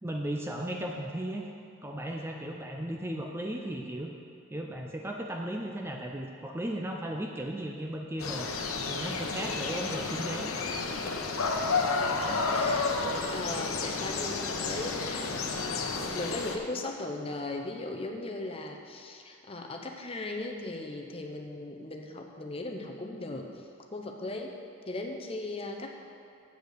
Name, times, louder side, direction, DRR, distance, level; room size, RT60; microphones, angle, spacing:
voice 1, 0.0-1.5 1.8-4.1 4.5-8.5 8.9-10.5, right 1 dB, 10° right, 1 dB, 0.5 m, -36 dB
sound 1, 8.2-16.6, left 4 dB, 85° left, 0.9 m, -31 dB
voice 2, 9.4-10.0 11.7-12.9 13.3-15.4 15.6-24.5 24.9-25.9, left 2 dB, 25° left, 2 dB, 0.8 m, -38 dB
8.0 x 7.9 x 6.6 m, 2.4 s
head